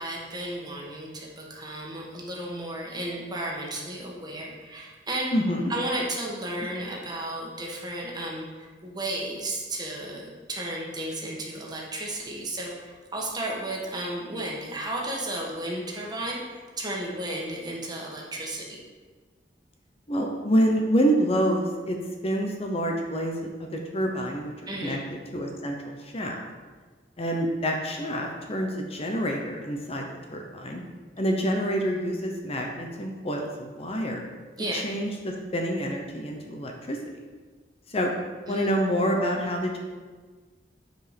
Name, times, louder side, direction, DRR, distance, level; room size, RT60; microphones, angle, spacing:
voice 1, 0.0-5.3 5.7-18.8 24.7-25.0 34.6-34.8 38.5-38.7, right 1 dB, 25° right, -2 dB, 1.5 m, -33 dB
voice 2, 5.3-5.7 6.6-6.7 20.1-22.0 22.2-24.5 24.8-25.0 25.3-26.4 27.2-30.8 31.2-34.2 34.7-37.0 37.9-38.1 38.5-39.8, equal, 35° left, 2 dB, 0.9 m, -27 dB
9.1 x 4.9 x 5.1 m, 1.4 s
head